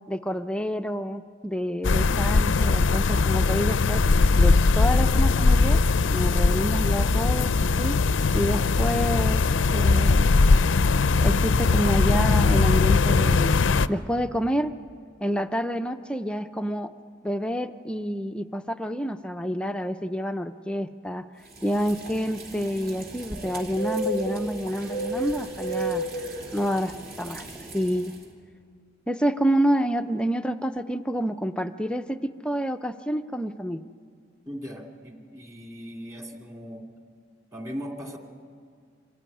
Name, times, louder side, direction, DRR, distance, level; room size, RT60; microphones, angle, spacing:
voice 1, 0.1-4.0 4.4-5.8 6.1-7.5 7.8-8.0 8.3-9.4 9.7-10.3 11.2-13.6 13.9-14.7 15.2-16.9 17.2-21.2 21.6-26.0 26.5-27.5 27.7-28.1 29.1-33.8, equal, 5° left, 8 dB, 0.5 m, -28 dB
sound 1, 1.8-13.9, left 3 dB, 80° left, 0.5 m, -20 dB
sound 2, 21.5-28.1, right 1 dB, 50° right, 3.0 m, -33 dB
voice 2, 34.5-36.8 37.5-38.2, equal, 15° right, 2 dB, 2.6 m, -38 dB
25.5 x 14.5 x 9.8 m, 2.1 s
head